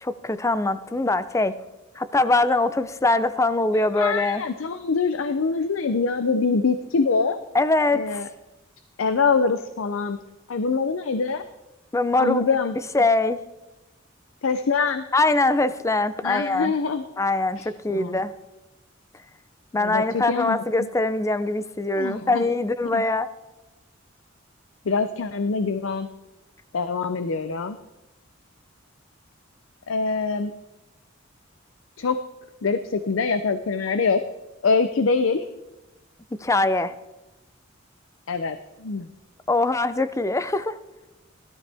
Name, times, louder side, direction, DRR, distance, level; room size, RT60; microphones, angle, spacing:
voice 1, 0.0-1.6 2.0-4.4 7.5-8.2 11.9-12.4 12.9-13.4 15.1-16.7 17.2-18.3 19.7-23.3 36.3-36.9 39.5-40.8, left 2 dB, 15° left, 14 dB, 0.5 m, -22 dB
voice 2, 4.0-7.4 7.9-8.3 9.0-10.2 10.5-11.4 12.2-12.8 14.4-15.0 16.2-17.0 17.6-18.2 19.7-20.9 21.9-22.4 22.9-23.0 24.9-26.1 26.7-27.8 29.9-30.5 32.0-32.2 32.6-34.2 34.6-35.5 38.3-39.1, left 4 dB, 90° left, 11 dB, 0.6 m, -24 dB
17.0 x 12.5 x 3.4 m, 1.0 s
head